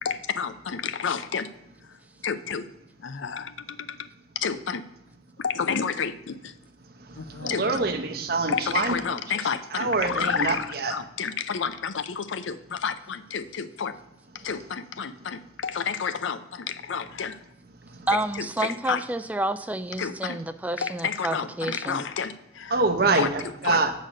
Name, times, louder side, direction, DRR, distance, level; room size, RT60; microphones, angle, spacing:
voice 1, 0.0-1.5 2.2-2.7 3.0-4.1 4.4-4.8 5.4-6.5 7.1-7.6 8.5-13.9 14.4-17.4 18.4-19.0 20.0-20.4 20.8-22.8 23.1-23.3 23.6-23.8, left 6 dB, 90° left, 12 dB, 0.5 m, -30 dB
voice 2, 7.4-9.0 9.7-10.9 22.7-23.9, right 3 dB, 55° right, 6 dB, 0.8 m, -25 dB
voice 3, 18.1-22.0, right 1 dB, 10° right, 9 dB, 0.3 m, -29 dB
7.7 x 4.1 x 6.2 m, 0.93 s
head